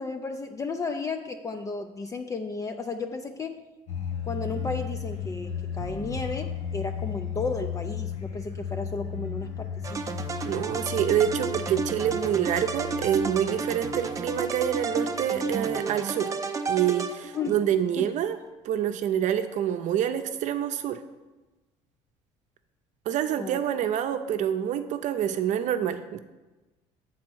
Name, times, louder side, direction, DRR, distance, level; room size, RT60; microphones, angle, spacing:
voice 1, 0.0-3.6 4.2-10.1 17.3-17.6 18.0-18.1 23.4-23.6, left 4 dB, 25° left, 6 dB, 0.4 m, -34 dB
sound 1, 3.9-15.8, left 7 dB, 65° left, 1.7 m, -35 dB
sound 2, 9.8-17.6, right 4 dB, 25° right, 0.6 m, -32 dB
voice 2, 10.4-16.3 16.7-18.4 18.6-21.0 23.1-26.2, right 10 dB, 60° right, 9 dB, 0.7 m, -27 dB
7.4 x 4.2 x 6.2 m, 1.1 s
supercardioid pair, 95°, 14 cm